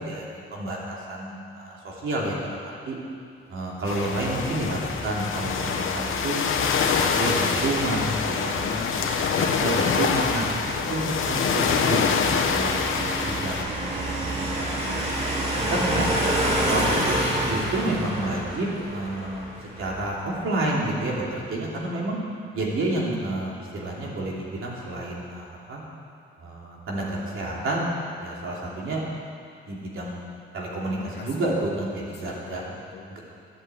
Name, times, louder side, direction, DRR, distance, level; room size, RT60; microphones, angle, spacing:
voice 1, 0.0-3.0 3.5-6.4 6.9-8.6 9.3-10.5 10.9-16.0 16.7-19.5 19.8-22.2 22.5-25.8 26.4-27.9 28.2-29.0 29.7-30.2 30.5-32.6 33.1-33.2, right 2 dB, 80° right, -4 dB, 3.2 m, -30 dB
sound 1, 3.9-13.6, left 6 dB, 80° left, 1.0 m, -25 dB
sound 2, 4.2-20.4, right 1 dB, 30° right, 3.0 m, -30 dB
voice 2, 8.6-9.5 16.8-17.0 30.9-33.2, left 4 dB, 55° left, -2 dB, 2.2 m, -38 dB
12.5 x 8.8 x 8.2 m, 2.5 s
wide cardioid pair, 150°, 21 cm